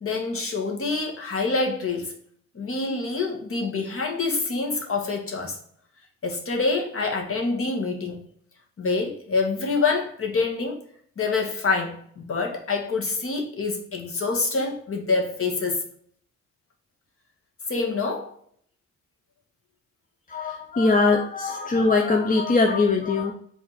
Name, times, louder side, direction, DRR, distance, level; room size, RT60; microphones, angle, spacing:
voice 1, 0.0-2.2 2.5-5.6 6.2-8.3 8.8-10.8 11.2-15.8 17.7-18.3, left 3 dB, 45° left, 1.9 m, -26 dB
voice 2, 20.3-23.3, left 3 dB, 25° left, 0.8 m, -21 dB
6.1 x 3.6 x 5.0 m
cardioid pair, 90°, 30 cm